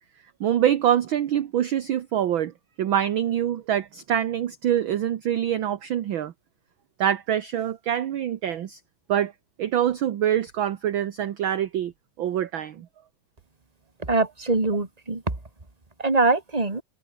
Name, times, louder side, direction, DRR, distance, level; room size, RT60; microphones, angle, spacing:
voice 1, 0.4-2.5 2.8-6.3 7.0-8.8 9.1-9.3 9.6-11.9 12.2-12.9, right 10 dB, 60° right, 1.4 m, -25 dB
voice 2, 14.1-15.2 16.0-16.8, right 3 dB, 15° right, 2.6 m, -23 dB
omnidirectional pair, 3.4 m